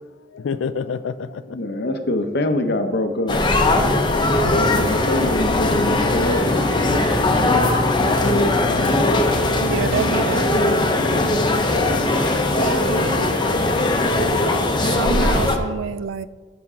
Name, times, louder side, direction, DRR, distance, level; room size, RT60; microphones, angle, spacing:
voice 1, 0.3-1.6 4.4-4.9 8.2-9.0 9.7-10.4 11.2-11.7, left 5 dB, 80° left, 14 dB, 0.4 m, -30 dB
voice 2, 1.5-3.4 4.4-6.9 10.6-11.0, left 1 dB, 60° left, 7 dB, 0.8 m, -25 dB
sound 1, 3.3-15.6, left 2 dB, 25° left, 0.8 m, -19 dB
voice 3, 9.6-10.9 12.6-13.3 14.9-16.3, right 6 dB, 85° right, 16 dB, 0.4 m, -28 dB
13.0 x 6.0 x 3.7 m, 1.4 s
head